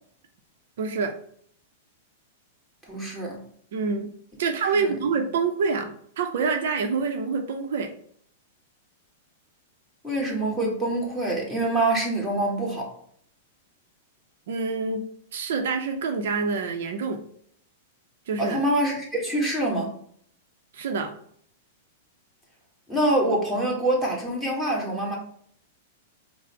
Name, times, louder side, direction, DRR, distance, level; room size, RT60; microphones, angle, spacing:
voice 1, 0.8-1.1 3.7-4.1 4.4-7.9 14.5-15.0 15.3-17.2 18.3-18.6 20.7-21.1, right 5 dB, 65° right, 0.5 m, -26 dB
voice 2, 2.8-3.4 4.7-4.9 10.0-12.9 18.4-19.9 22.9-25.2, right 1 dB, ahead, 1.6 m, -25 dB
4.8 x 2.0 x 4.4 m
hypercardioid pair, 110°, 0 cm